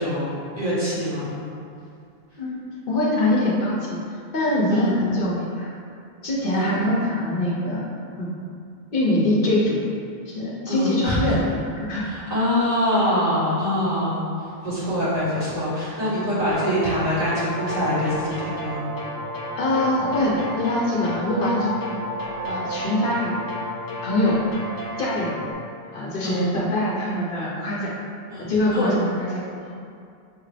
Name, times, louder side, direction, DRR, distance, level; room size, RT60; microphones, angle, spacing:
voice 1, 0.0-1.3 4.7-5.0 6.4-6.8 10.7-11.2 12.0-14.2 14.6-18.8 26.2-26.5 28.3-29.0, equal, 40° right, -11 dB, 1.4 m, -24 dB
voice 2, 2.4-4.0 4.3-5.7 6.2-7.8 8.2-8.3 8.9-9.8 10.3-11.4 11.8-12.0 19.6-21.7 22.5-23.4 24.0-24.4 25.0-25.4 25.9-27.9 28.4-29.7, left 1 dB, 60° left, -4 dB, 0.8 m, -23 dB
sound 1, 14.2-24.9, left 1 dB, 75° right, 0.9 m, -38 dB
sound 2, 16.5-25.5, left 1 dB, 30° left, 0.5 m, -34 dB
6.2 x 2.5 x 3.2 m, 2.4 s
omnidirectional pair, 1.0 m